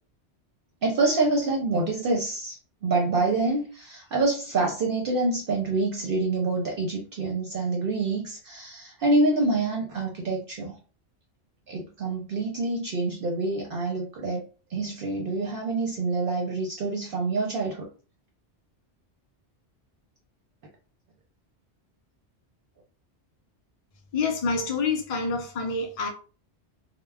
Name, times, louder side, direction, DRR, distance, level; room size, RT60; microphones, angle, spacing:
voice 1, 0.8-2.6 2.8-10.8 11.7-14.4 14.7-17.9, right 2 dB, 60° right, 0.7 m, -26 dB
voice 2, 24.1-26.1, left 4 dB, 45° left, 0.4 m, -27 dB
2.2 x 2.0 x 3.3 m
omnidirectional pair, 1.2 m